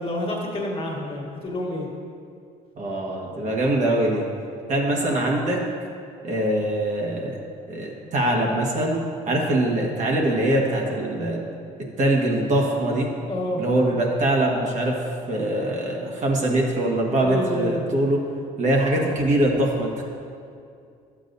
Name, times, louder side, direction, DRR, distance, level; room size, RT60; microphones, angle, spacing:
voice 1, 0.0-1.9 13.3-13.6 17.2-17.8, left 1 dB, 35° left, -1 dB, 1.6 m, -28 dB
voice 2, 2.8-4.2 4.7-5.6 6.2-7.4 7.7-9.0 9.3-11.4 12.0-13.1 13.6-15.0 15.3-18.2 18.6-20.0, right 1 dB, 45° right, -2 dB, 1.5 m, -23 dB
11.0 x 7.3 x 2.7 m, 2.4 s
cardioid pair, 110°, 17 cm